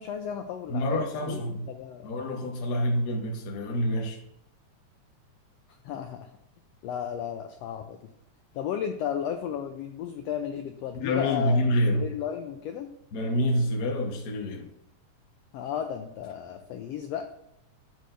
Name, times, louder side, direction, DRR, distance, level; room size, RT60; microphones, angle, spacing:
voice 1, 0.0-2.1 5.8-6.3 6.8-8.1 8.5-11.6 11.9-12.9 15.5-17.3, left 8 dB, 80° left, 1.5 m, -34 dB
voice 2, 0.7-1.6 2.0-4.2 10.9-12.1 13.1-14.7, left 1 dB, 60° left, 1.0 m, -27 dB
9.2 x 8.4 x 2.6 m
omnidirectional pair, 3.5 m